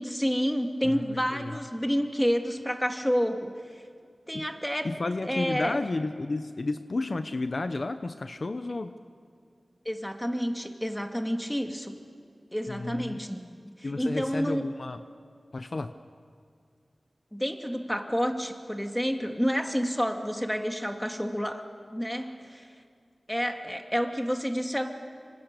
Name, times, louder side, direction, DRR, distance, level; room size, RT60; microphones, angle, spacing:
voice 1, 0.0-3.5 4.3-4.9 5.2-5.8 9.9-12.0 12.5-14.6 17.3-21.6 21.9-22.7 23.3-24.9, equal, 5° left, 4 dB, 2.2 m, -29 dB
voice 2, 4.8-8.9 12.7-13.2 13.8-15.0 15.5-15.9, left 2 dB, 55° left, 9 dB, 0.8 m, -32 dB
26.5 x 26.0 x 6.8 m, 2.3 s
wide cardioid pair, 65°, 0 cm